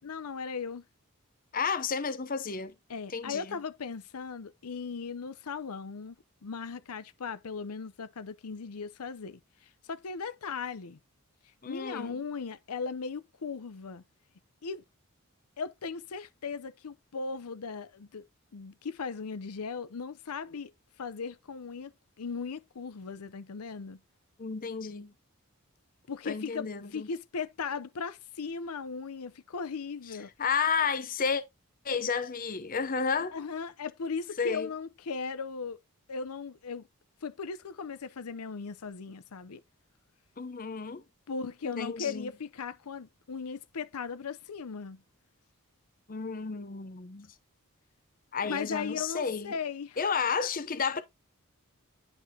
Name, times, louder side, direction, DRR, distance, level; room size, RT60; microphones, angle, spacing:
voice 1, 0.0-0.8 2.9-6.2 6.4-11.0 11.7-14.0 14.6-14.8 15.6-18.2 18.5-20.7 21.0-21.9 22.2-24.0 26.1-30.3 33.3-35.8 36.1-36.9 37.2-39.6 41.3-45.0 48.4-50.0, left 5 dB, 85° left, 0.6 m, -37 dB
voice 2, 1.5-2.7 3.1-3.4 11.6-12.2 24.4-25.1 26.3-27.1 30.4-31.4 31.8-33.4 34.4-34.7 40.4-41.0 41.7-42.3 46.1-47.3 48.3-49.5 50.0-51.0, left 5 dB, 40° left, 0.7 m, -31 dB
10.0 x 5.4 x 2.8 m
head